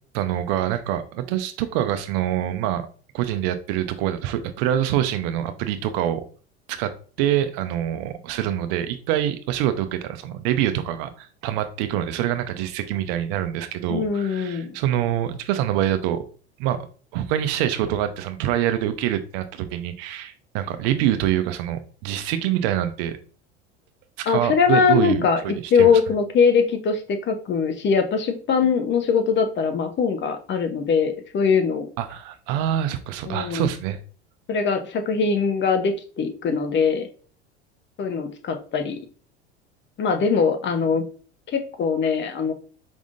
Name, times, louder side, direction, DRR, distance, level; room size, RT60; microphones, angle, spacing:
voice 1, 0.1-2.8 3.1-6.2 6.7-16.2 16.6-23.2 24.3-25.9 32.0-34.0, right 11 dB, 60° right, 9 dB, 0.6 m, -25 dB
voice 2, 13.9-14.8 24.3-25.4 25.7-31.9 33.3-33.6 34.5-37.1 38.0-39.0 40.0-41.0 41.5-42.5, left 5 dB, 35° left, 7 dB, 0.8 m, -21 dB
5.1 x 3.5 x 2.5 m, 0.40 s
hypercardioid pair, 85°, 34 cm